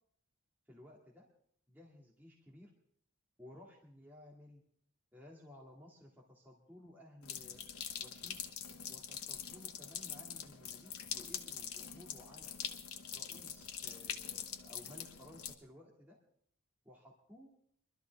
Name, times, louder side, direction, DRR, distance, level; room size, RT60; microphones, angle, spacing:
voice 1, 0.7-1.3 1.7-2.7 3.4-4.6 5.1-7.6 8.0-8.4 8.9-12.5 13.1-16.2 16.8-17.5, left 1 dB, 10° right, -4 dB, 2.1 m, -57 dB
sound 1, 7.2-15.5, left 8 dB, 75° left, 1.1 m, -44 dB
22.5 x 13.0 x 3.5 m, 0.63 s
head